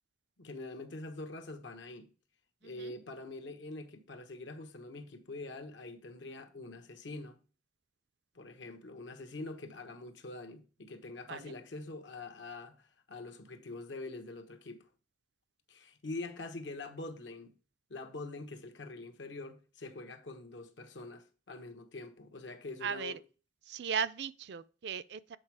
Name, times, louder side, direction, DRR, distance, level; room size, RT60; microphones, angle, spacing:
voice 1, 0.4-2.1 2.6-7.4 8.3-14.9 15.7-17.5 17.9-23.2, left 2 dB, 80° left, 1.1 m, -45 dB
voice 2, 22.8-23.1 23.7-25.4, right 7 dB, 65° right, 0.4 m, -36 dB
7.7 x 4.3 x 4.7 m
head